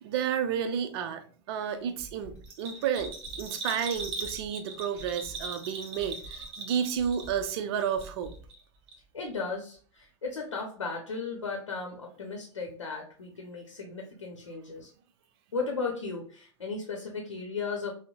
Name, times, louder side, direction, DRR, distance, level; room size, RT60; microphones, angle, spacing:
voice 1, 0.0-8.3, right 8 dB, 55° right, 8 dB, 0.5 m, -31 dB
sound 1, 1.7-9.5 9.7-9.8 10.2-10.3, right 2 dB, 25° left, 0.8 m, -50 dB
Bell, 2.4-7.5 7.8-8.6 8.9-9.0, right 3 dB, 35° right, 0.9 m, -39 dB
voice 2, 9.1-14.9 15.5-17.9, left 4 dB, 80° left, 1 dB, 0.7 m, -36 dB
5.2 x 2.0 x 2.3 m, 0.42 s
figure-of-eight pair, 80°, 16 cm